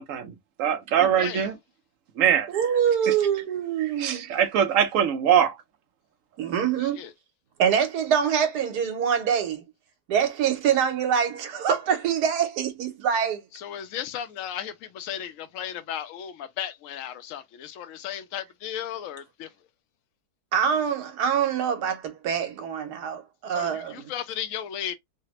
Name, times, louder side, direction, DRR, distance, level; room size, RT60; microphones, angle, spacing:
voice 1, 0.0-1.6 2.2-2.5 3.0-3.1 4.0-5.6, right 9 dB, 65° right, 0.9 m, -22 dB
voice 2, 2.5-4.4 6.4-7.0 7.6-9.6 10.1-13.4 20.5-24.1, right 8 dB, 85° right, 1.3 m, -25 dB
voice 3, 6.8-7.1 13.5-19.5 23.5-24.9, left 10 dB, 65° left, 0.9 m, -35 dB
3.3 x 2.1 x 2.9 m
omnidirectional pair, 1.7 m